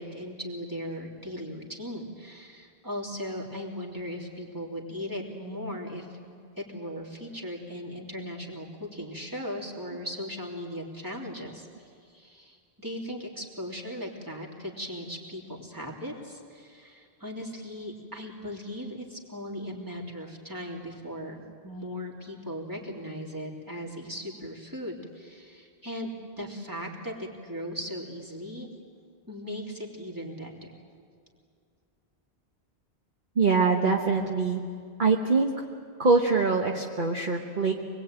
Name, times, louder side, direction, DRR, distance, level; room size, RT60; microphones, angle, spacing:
voice 1, 0.0-6.3 6.6-21.4 21.6-28.7 29.3-30.8, equal, 20° right, -2 dB, 3.3 m, -38 dB
voice 2, 33.3-34.6 35.0-35.5 36.0-37.7, right 4 dB, 50° right, 1 dB, 1.4 m, -23 dB
25.5 x 21.0 x 9.1 m, 2.3 s
omnidirectional pair, 1.1 m